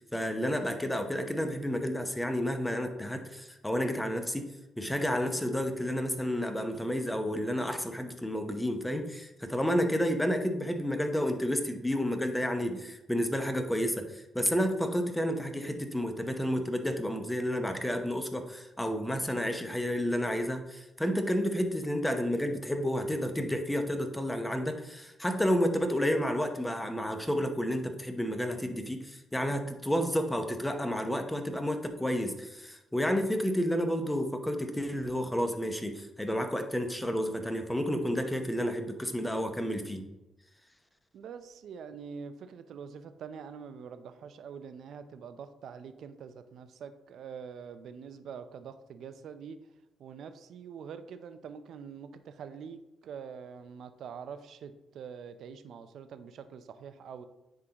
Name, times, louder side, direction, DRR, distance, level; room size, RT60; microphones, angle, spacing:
voice 1, 0.0-4.5 4.8-40.1, equal, 5° left, 6 dB, 0.8 m, -31 dB
voice 2, 41.1-49.6 50.0-57.3, right 6 dB, 70° right, 10 dB, 0.5 m, -45 dB
9.7 x 3.7 x 2.9 m, 0.98 s
cardioid pair, 90°, 0 cm